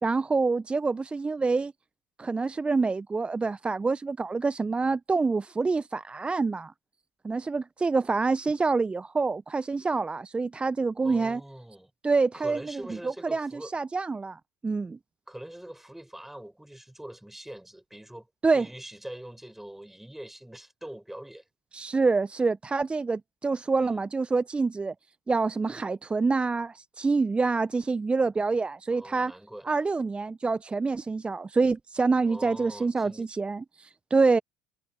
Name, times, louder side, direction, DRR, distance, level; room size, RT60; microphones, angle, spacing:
voice 1, 0.0-1.7 2.2-6.7 7.2-11.4 12.0-15.0 18.4-18.7 21.7-24.9 25.3-29.3 29.7-34.4, right 4 dB, 20° right, 0.8 m, -26 dB
voice 2, 11.0-11.9 12.3-13.7 15.3-18.3 18.5-21.4 23.8-24.0 28.9-29.7 32.3-33.3, right 1 dB, 5° right, 6.8 m, -43 dB
figure-of-eight pair, 60°, 5 cm